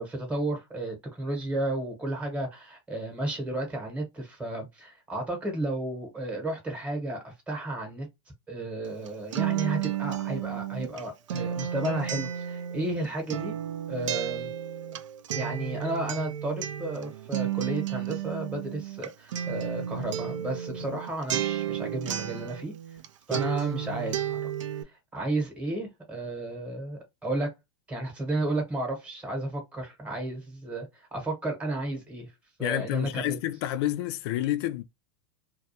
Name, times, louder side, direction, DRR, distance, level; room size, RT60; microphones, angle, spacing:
voice 1, 0.0-8.1 8.5-13.6 13.9-14.5 15.3-23.0 23.3-24.4 24.8-27.5 27.9-32.3 32.6-33.4, right 1 dB, 10° right, 0.9 m, -33 dB
Acoustic guitar, 8.8-23.1 23.3-24.8, right 10 dB, 85° right, 0.4 m, -32 dB
voice 2, 32.6-34.8, left 13 dB, 55° left, 0.4 m, -29 dB
2.3 x 2.2 x 2.7 m
hypercardioid pair, 115°, 16 cm